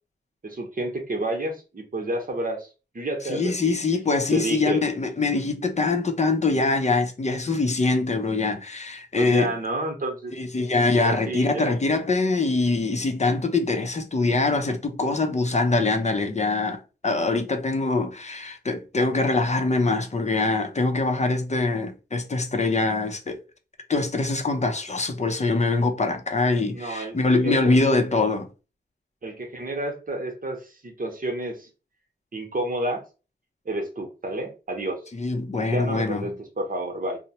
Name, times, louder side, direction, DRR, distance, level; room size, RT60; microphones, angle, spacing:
voice 1, 0.4-2.7 2.9-3.8 4.3-4.8 9.2-10.3 10.9-11.7 26.7-27.8 29.2-31.7 32.3-33.0 33.6-35.0 35.6-37.2, right 1 dB, 50° right, 0.9 m, -30 dB
voice 2, 3.2-9.5 10.3-23.4 23.9-28.5 35.1-36.3, left 3 dB, 40° left, 0.5 m, -23 dB
2.8 x 2.0 x 2.8 m
wide cardioid pair, 60°, 19 cm